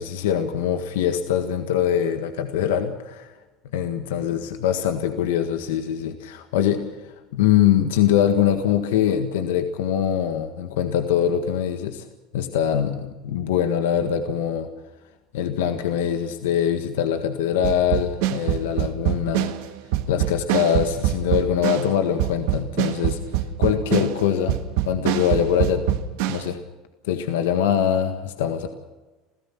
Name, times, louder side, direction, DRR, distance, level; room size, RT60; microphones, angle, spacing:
voice 1, 0.0-3.3 3.7-6.9 7.3-12.1 12.3-14.7 15.3-19.5 20.1-24.6 24.9-26.0 26.3-26.6 27.0-28.7, left 9 dB, 85° left, 6 dB, 1.6 m, -23 dB
sound 1, 17.6-26.5, right 13 dB, 75° right, 1.5 m, -24 dB
28.0 x 16.5 x 6.0 m, 1.2 s
supercardioid pair, 110°, 0 cm